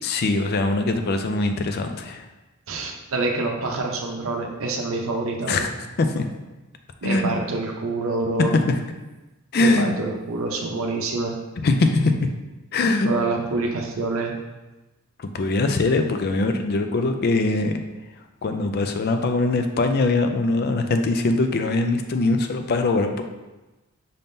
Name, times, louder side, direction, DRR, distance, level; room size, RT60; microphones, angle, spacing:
voice 1, 0.0-2.3 5.5-5.7 6.0-6.3 7.0-7.5 8.4-8.8 9.5-10.0 11.6-12.3 12.7-13.1 15.2-17.7 18.4-23.2, left 2 dB, 50° left, 6 dB, 0.4 m, -22 dB
voice 2, 2.7-5.6 7.0-8.5 9.5-11.4 13.0-14.3, right 3 dB, 70° right, 0 dB, 0.6 m, -26 dB
5.6 x 3.6 x 2.6 m, 1.1 s
head